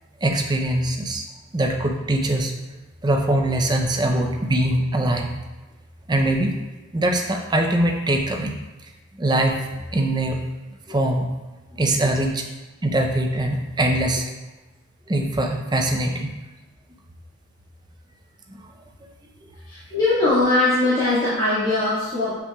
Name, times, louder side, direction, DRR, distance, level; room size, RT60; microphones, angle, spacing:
voice 1, 0.2-1.2 1.5-2.5 3.0-5.3 6.1-6.5 6.9-8.5 9.2-10.4 10.9-11.3 11.8-12.4 12.8-14.3 15.1-16.3, right 1 dB, 20° right, 2 dB, 0.5 m, -22 dB
voice 2, 19.7-22.4, left 2 dB, 20° left, -13 dB, 1.7 m, -21 dB
7.1 x 5.6 x 2.3 m, 1.1 s
head